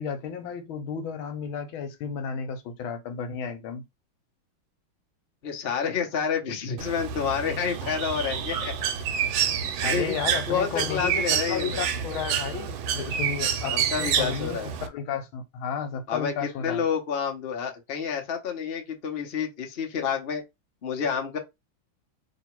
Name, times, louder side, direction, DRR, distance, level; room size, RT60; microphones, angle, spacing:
voice 1, 0.0-3.8 9.8-16.8, left 6 dB, 80° left, 1.6 m, -33 dB
voice 2, 5.4-8.9 9.6-10.1 10.5-11.8 13.7-14.7 16.1-20.4 20.8-21.4, left 7 dB, 45° left, 0.8 m, -29 dB
Bird, 6.8-14.9, right 8 dB, 85° right, 1.5 m, -28 dB
3.0 x 3.0 x 4.4 m
omnidirectional pair, 2.2 m